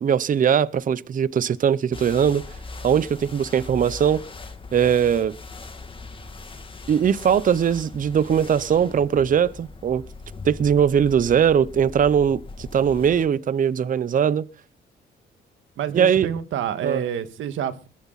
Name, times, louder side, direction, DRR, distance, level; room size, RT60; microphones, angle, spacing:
voice 1, 0.0-2.4 2.8-4.2 4.7-5.3 6.9-10.0 10.4-14.4 15.9-16.3 16.8-17.0, right 8 dB, 45° right, 0.7 m, -20 dB
sound 1, 1.9-13.2, left 3 dB, 25° left, 2.2 m, -40 dB
voice 2, 15.8-17.9, right 9 dB, 75° right, 1.8 m, -28 dB
21.5 x 11.0 x 4.1 m
cardioid pair, 90°, 20 cm